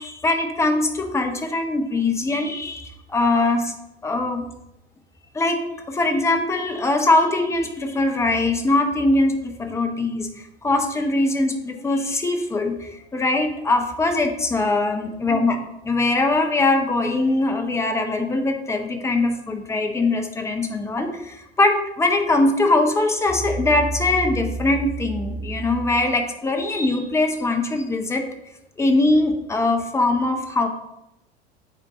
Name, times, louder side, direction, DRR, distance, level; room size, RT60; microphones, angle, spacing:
voice 1, 0.0-3.7 4.0-4.4 5.3-5.6 5.9-10.3 10.6-15.6 15.8-28.2 28.8-30.7, left 2 dB, 10° left, 4 dB, 0.7 m, -21 dB
9.2 x 3.7 x 3.7 m, 0.89 s
figure-of-eight pair, 80°, 34 cm